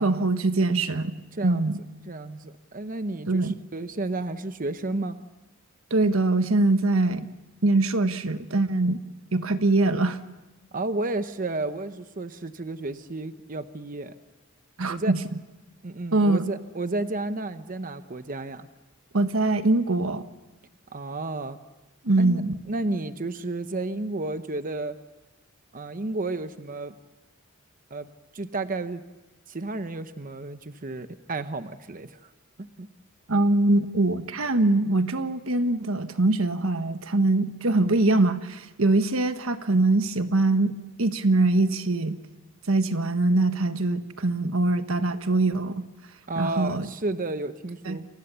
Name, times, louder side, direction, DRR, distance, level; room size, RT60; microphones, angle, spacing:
voice 1, 0.0-1.1 1.4-1.7 3.3-3.6 5.9-7.3 7.6-9.0 9.3-10.2 14.8-15.2 16.1-16.4 19.1-20.2 22.0-22.6 33.3-40.7 41.0-42.2 42.7-45.9 46.4-46.9 47.8-48.0, right 2 dB, 80° right, 9 dB, 1.3 m, -23 dB
voice 2, 1.3-1.7 2.1-5.2 10.7-14.2 14.9-15.1 15.8-18.7 20.9-21.6 22.2-22.4 22.7-25.0 25.7-26.9 27.9-29.0 29.5-32.3 32.6-32.9 46.3-48.1, right 2 dB, 40° right, 10 dB, 0.9 m, -32 dB
29.5 x 24.0 x 6.9 m, 1.1 s
head